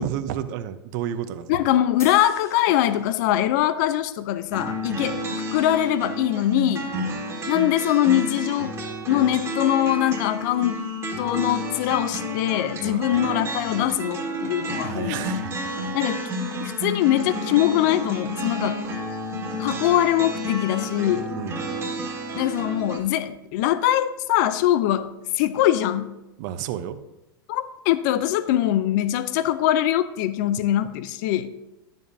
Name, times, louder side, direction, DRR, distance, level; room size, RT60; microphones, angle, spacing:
voice 1, 0.0-1.6 4.9-5.1 6.9-7.2 12.8-13.1 14.8-15.5 21.3-21.6 26.4-27.0, right 10 dB, 55° right, 10 dB, 0.7 m, -32 dB
voice 2, 1.5-5.2 5.5-6.9 7.5-8.7 9.1-10.8 11.2-15.2 15.9-16.3 16.6-18.8 19.6-21.3 22.4-26.2 27.5-31.5, left 12 dB, 55° left, 13 dB, 0.5 m, -22 dB
sound 1, 2.0-3.6, left 4 dB, 25° left, 1.1 m, -43 dB
sound 2, 4.5-23.0, equal, 20° right, 1.7 m, -30 dB
10.5 x 7.3 x 2.7 m, 0.97 s
hypercardioid pair, 120°, 12 cm